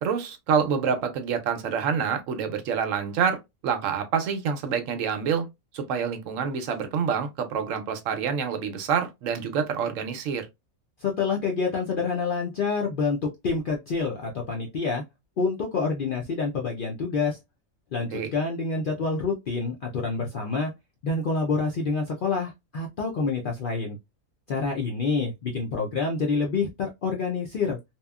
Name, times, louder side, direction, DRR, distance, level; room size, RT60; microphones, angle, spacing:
voice 1, 0.0-3.4 3.6-5.5 5.7-10.5 18.1-18.3, right 7 dB, 75° right, 0.9 m, -27 dB
voice 2, 11.0-15.0 15.4-17.4 17.9-20.7 21.0-24.0 24.5-27.8, left 4 dB, 60° left, 0.5 m, -27 dB
2.8 x 2.3 x 2.2 m
omnidirectional pair, 1.4 m